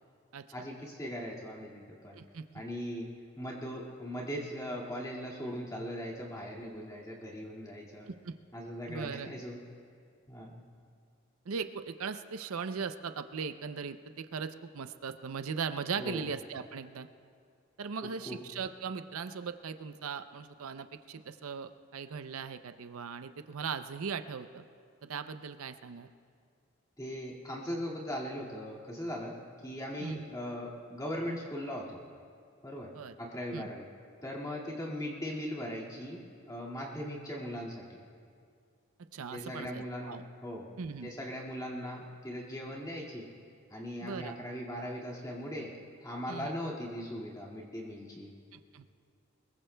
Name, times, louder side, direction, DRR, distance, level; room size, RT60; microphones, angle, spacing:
voice 1, 0.5-2.2 2.5-8.1 8.5-9.6 10.3-10.6 16.0-16.3 18.0-18.4 27.0-29.4 29.6-32.0 32.6-32.9 33.2-33.9 34.2-38.0 39.3-40.7 41.0-43.3 43.7-48.3, equal, 15° left, -4 dB, 2.0 m, -39 dB
voice 2, 2.1-2.4 8.1-8.3 8.9-9.3 11.5-17.1 17.8-24.6 25.0-26.1 30.0-30.3 32.9-33.1 33.5-33.7 39.1-40.2 40.8-41.1 44.0-44.3 46.3-46.5 48.5-48.9, right 5 dB, 80° right, 10 dB, 0.5 m, -39 dB
23.0 x 21.5 x 2.2 m, 2.2 s
head